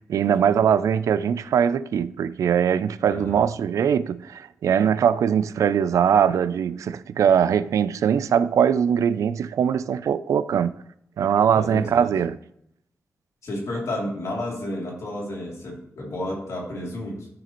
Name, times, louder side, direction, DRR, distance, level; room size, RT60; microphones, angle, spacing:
voice 1, 0.0-10.7 11.2-12.4, right 8 dB, 85° right, 0.4 m, -21 dB
voice 2, 3.0-3.4 11.5-12.1 13.4-17.3, left 1 dB, 75° left, 2.9 m, -31 dB
13.0 x 4.9 x 3.0 m
cardioid pair, 90°, 5 cm